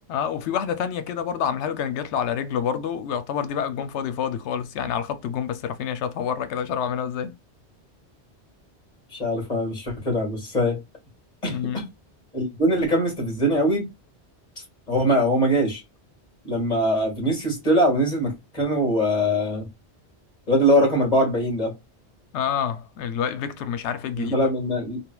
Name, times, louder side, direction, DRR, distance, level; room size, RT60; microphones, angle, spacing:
voice 1, 0.1-7.3 11.5-11.8 22.3-24.5, left 8 dB, 85° left, 0.9 m, -28 dB
voice 2, 9.1-10.8 11.4-11.9 12.3-13.8 14.9-15.8 16.4-19.7 20.5-21.7 24.1-25.0, equal, 40° left, 1.8 m, -22 dB
3.6 x 2.6 x 2.2 m
omnidirectional pair, 1.1 m